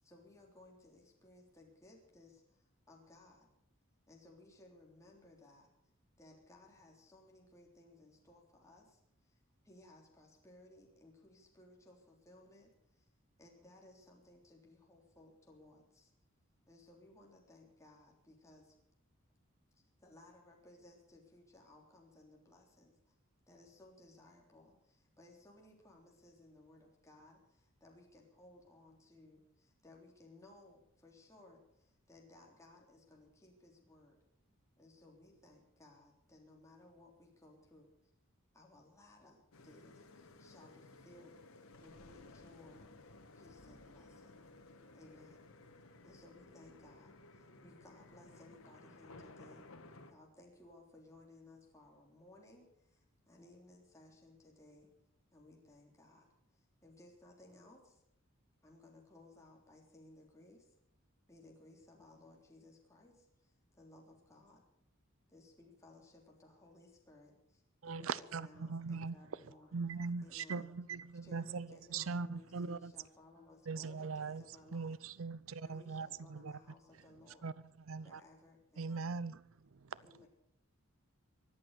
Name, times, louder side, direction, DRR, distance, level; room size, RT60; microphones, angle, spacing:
voice 1, 0.0-3.5 4.1-5.7 6.2-13.1 13.4-16.1 16.7-18.8 19.7-23.2 23.5-34.2 34.8-37.9 38.5-42.9 43.4-44.5 44.9-45.4 46.0-49.7 50.1-54.9 55.3-58.0 58.6-60.7 61.3-64.6 65.3-69.7 70.2-70.7 71.2-75.0 75.6-77.5 78.0-79.3 80.0-80.3, left 2 dB, 15° left, 3.5 m, -61 dB
sound 1, 39.5-50.1, left 2 dB, 80° left, 1.6 m, -57 dB
voice 2, 63.6-63.8 64.3-64.4 65.2-65.4 68.5-68.7, left 2 dB, 40° left, 5.8 m, -81 dB
voice 3, 67.8-69.2 69.7-72.9 73.7-74.4 74.7-76.6 77.4-77.5 77.9-78.2 78.8-79.4 79.7-80.0, right 4 dB, 70° right, 0.6 m, -40 dB
23.5 x 8.7 x 6.6 m
head